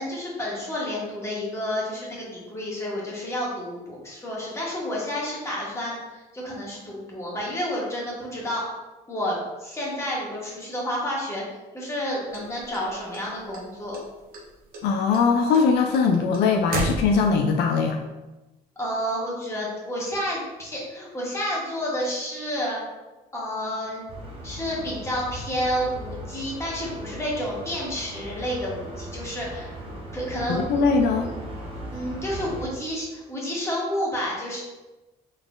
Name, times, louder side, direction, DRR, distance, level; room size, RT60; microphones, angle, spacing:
voice 1, 0.0-8.7 9.1-11.4 11.7-14.0 18.8-22.8 23.3-24.0 24.4-29.7 30.1-30.8 31.2-31.3 31.9-34.6, equal, 15° left, -5 dB, 1.3 m, -30 dB
sound 1, 12.3-13.6 13.9-14.5 14.7-17.5, right 1 dB, 60° right, 0.9 m, -31 dB
voice 2, 14.8-18.0 30.5-31.3, left 5 dB, 75° left, 3 dB, 0.4 m, -21 dB
sound 2, 24.1-32.7, equal, 35° right, 0.8 m, -38 dB
4.1 x 3.6 x 2.3 m, 1.1 s
cardioid pair, 110°, 17 cm